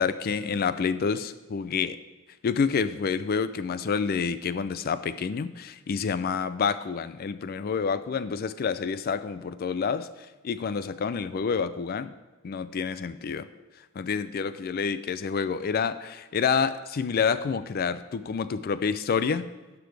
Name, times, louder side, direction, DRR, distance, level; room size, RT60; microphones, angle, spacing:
voice 1, 0.0-2.0 2.4-10.1 10.4-12.1 12.4-13.5 14.0-19.5, left 6 dB, 45° left, 14 dB, 0.4 m, -28 dB
11.5 x 6.1 x 3.3 m, 1.2 s
head